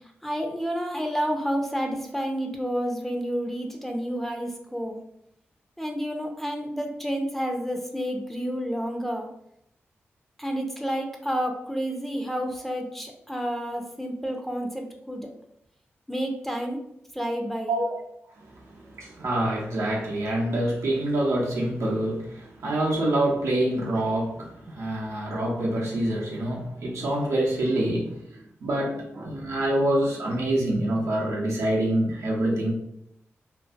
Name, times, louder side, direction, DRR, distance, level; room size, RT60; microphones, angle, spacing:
voice 1, 0.2-5.0 5.8-9.3 10.4-15.3 16.1-16.8 17.1-17.8, equal, 5° left, 2 dB, 0.6 m, -30 dB
voice 2, 18.4-32.7, right 1 dB, 80° right, -3 dB, 0.7 m, -26 dB
2.6 x 2.4 x 2.4 m, 0.75 s
supercardioid pair, 40°, 5 cm